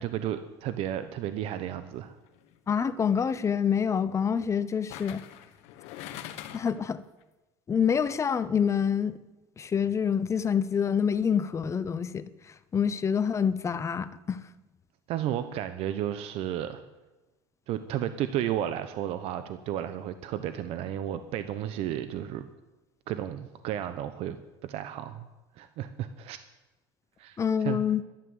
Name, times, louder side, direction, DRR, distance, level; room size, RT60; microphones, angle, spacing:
voice 1, 0.0-2.1 15.1-16.8 17.7-22.5 23.1-24.4 24.6-25.3 25.6-26.4 27.2-27.8, right 11 dB, 60° right, 0.9 m, -33 dB
sound 1, 2.3-2.6 4.9-6.9 7.2-7.3, left 12 dB, 65° left, 1.3 m, -43 dB
voice 2, 2.7-5.2 6.5-7.0 7.7-9.2 9.6-12.3 12.7-14.4 27.4-28.0, left 7 dB, 25° left, 0.8 m, -26 dB
12.0 x 11.5 x 8.0 m
supercardioid pair, 110°, 12 cm